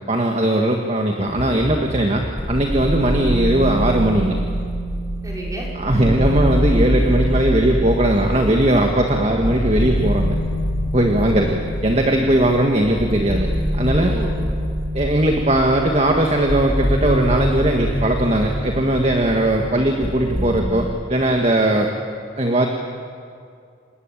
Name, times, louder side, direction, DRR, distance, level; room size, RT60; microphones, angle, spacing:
voice 1, 0.1-2.2 2.5-4.3 5.8-10.4 10.9-14.1 14.9-21.9 22.4-22.7, right 1 dB, 35° right, 2 dB, 1.8 m, -19 dB
sound 1, 1.2-20.6, equal, 20° left, 4.0 m, -24 dB
voice 2, 5.2-5.7 11.2-11.7 14.1-14.3, equal, 20° right, -2 dB, 5.8 m, -33 dB
28.5 x 19.0 x 9.1 m, 2.3 s
head